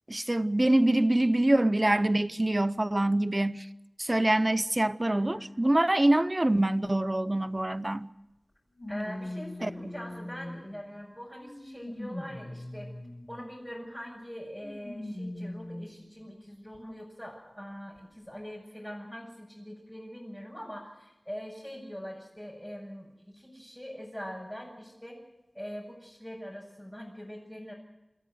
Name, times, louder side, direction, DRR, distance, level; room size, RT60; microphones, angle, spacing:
voice 1, 0.1-3.7 4.0-8.1 9.6-9.7, right 1 dB, 35° right, 0.8 m, -25 dB
voice 2, 5.1-5.6 8.9-12.9 13.3-25.2 25.5-27.7, equal, 15° left, 6.9 m, -43 dB
sound 1, 7.6-7.7 8.8-10.8 11.4-13.4 14.6-16.0 16.7-16.8 18.0-18.1, left 1 dB, 50° left, 6.1 m, -40 dB
28.5 x 13.5 x 7.9 m
wide cardioid pair, 50°, 0 cm